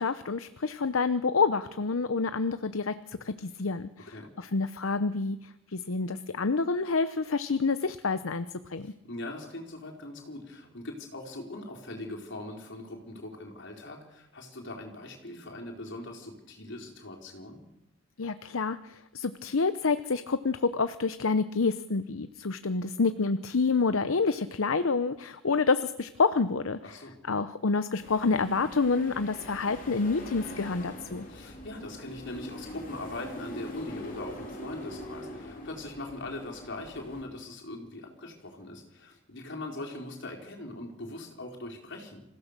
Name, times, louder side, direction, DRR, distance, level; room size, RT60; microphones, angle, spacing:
voice 1, 0.0-8.9 18.2-27.0 27.3-31.2, left 4 dB, 80° left, 12 dB, 0.8 m, -28 dB
voice 2, 4.0-4.3 8.8-17.6 26.8-27.2 31.3-42.2, left 2 dB, 60° left, 1 dB, 4.4 m, -41 dB
sound 1, 28.0-37.2, left 1 dB, 45° left, 4.1 m, -43 dB
26.0 x 16.0 x 6.7 m, 0.87 s
head